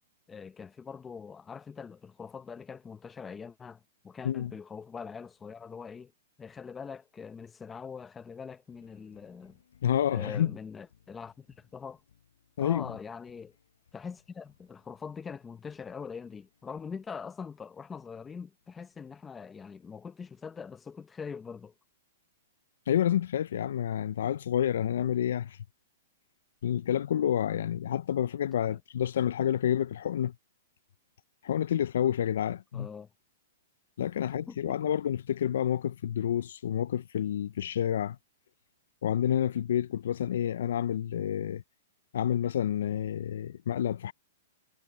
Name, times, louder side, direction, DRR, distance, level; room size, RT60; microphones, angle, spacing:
voice 1, 0.3-6.1 6.4-9.6 10.1-12.0 12.6-13.5 13.9-21.7 28.7-28.8 32.7-33.1 34.2-34.8, left 6 dB, 10° left, 0.8 m, -43 dB
sound 1, 8.7-20.5, left 8 dB, 85° left, 7.8 m, -68 dB
voice 2, 9.8-10.5 12.6-12.9 22.9-25.6 26.6-30.3 31.4-32.9 34.0-38.2 39.0-41.6 42.1-44.1, left 10 dB, 70° left, 0.3 m, -29 dB
hypercardioid pair, 155°, 0 cm